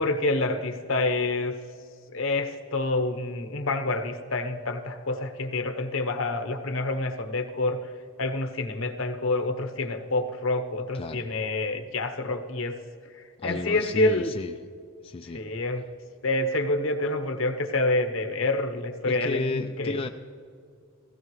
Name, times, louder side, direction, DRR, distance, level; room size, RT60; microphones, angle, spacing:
voice 1, 0.0-1.6 2.1-7.8 8.2-12.8 13.1-14.4 15.3-15.8 16.2-20.1, left 2 dB, 65° left, 6 dB, 1.0 m, -27 dB
voice 2, 13.4-14.6 15.0-15.4 19.1-20.1, left 3 dB, 25° left, 5 dB, 0.3 m, -33 dB
16.0 x 16.0 x 3.2 m, 2.2 s
head